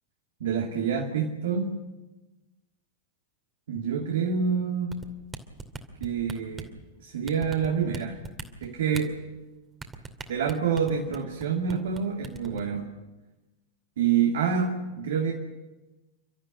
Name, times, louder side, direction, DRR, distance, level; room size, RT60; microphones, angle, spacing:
voice 1, 0.4-1.8 3.7-4.9 6.0-6.7 7.0-8.2 8.6-9.2 10.3-12.9 14.0-15.3, right 6 dB, 60° right, 1 dB, 2.6 m, -27 dB
sound 1, 4.9-6.8 7.3-9.0 9.8-11.4 11.7-12.0 12.2-12.6, right 4 dB, 15° right, 2.5 m, -38 dB
30.0 x 13.5 x 9.7 m, 1.1 s
figure-of-eight pair, 90°, 0 cm